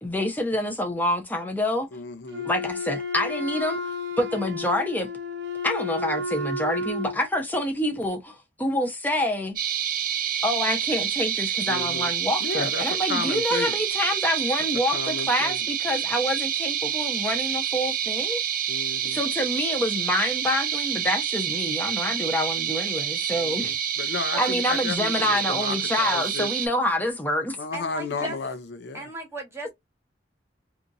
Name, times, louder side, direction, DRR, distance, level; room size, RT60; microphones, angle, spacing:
voice 1, 0.0-1.9 2.5-3.8 4.2-5.1 5.6-9.5 10.4-18.4 18.8-23.8 24.4-27.6, left 1 dB, 10° left, 0.8 m, -27 dB
voice 2, 1.9-2.5 11.7-12.1 12.4-12.8 13.1-13.7 14.9-15.6 18.7-19.2 23.4-26.5 27.6-29.0, left 4 dB, 65° left, 0.5 m, -33 dB
Wind instrument woodwind instrument, 2.3-7.2, left 2 dB, 70° right, 0.9 m, -32 dB
sound 1, 9.6-26.7, right 9 dB, 50° right, 0.4 m, -28 dB
voice 3, 27.7-28.4 28.9-29.7, right 1 dB, 15° right, 1.1 m, -35 dB
2.8 x 2.5 x 2.6 m
head